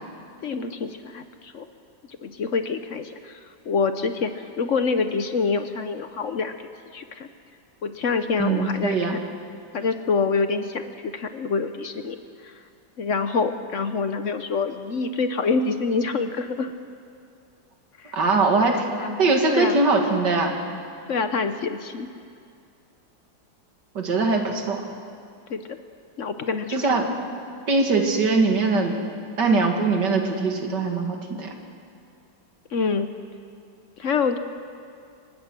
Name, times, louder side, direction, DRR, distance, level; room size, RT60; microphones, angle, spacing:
voice 1, 0.4-1.7 2.2-6.5 6.9-7.3 7.8-9.2 9.7-12.2 12.4-12.5 13.0-16.7 18.0-18.1 19.0-19.2 19.5-19.8 21.1-22.1 25.5-25.8 26.2-27.0 32.7-33.1 34.0-34.4, left 4 dB, 55° left, 9 dB, 0.9 m, -26 dB
voice 2, 8.4-9.2 18.1-18.8 19.2-20.6 23.9-24.8 26.7-27.1 27.7-28.9 29.4-31.5, right 3 dB, 65° right, 3 dB, 2.6 m, -21 dB
24.0 x 19.5 x 6.1 m, 2.3 s
omnidirectional pair, 2.0 m